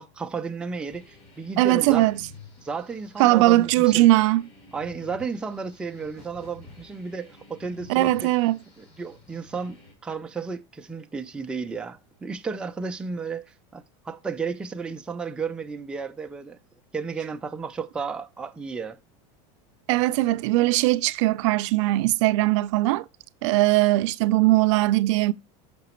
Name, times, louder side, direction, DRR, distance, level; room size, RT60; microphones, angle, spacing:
voice 1, 0.0-2.1 2.6-4.1 4.7-8.3 8.8-13.4 13.7-16.6 16.9-19.0, right 5 dB, 5° right, 0.3 m, -33 dB
sound 1, 0.9-9.9, left 4 dB, 45° left, 3.2 m, -50 dB
voice 2, 1.6-2.2 3.2-4.4 7.9-8.6 19.9-23.0 23.4-25.3, right 18 dB, 75° right, 0.4 m, -20 dB
5.9 x 5.6 x 3.0 m
supercardioid pair, 150°, 16 cm